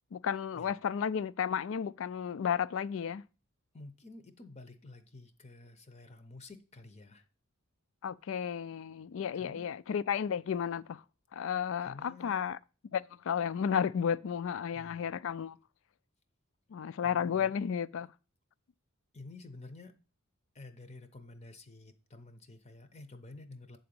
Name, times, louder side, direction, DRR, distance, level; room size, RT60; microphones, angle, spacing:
voice 1, 0.1-3.2 8.0-11.0 11.3-12.6 12.9-15.6 16.7-18.1, left 7 dB, 65° left, 0.3 m, -33 dB
voice 2, 3.7-7.3 9.3-9.7 11.8-12.5 14.7-15.1 17.0-17.5 19.1-20.0 20.5-23.8, left 2 dB, 30° left, 0.6 m, -51 dB
8.0 x 3.9 x 6.8 m
head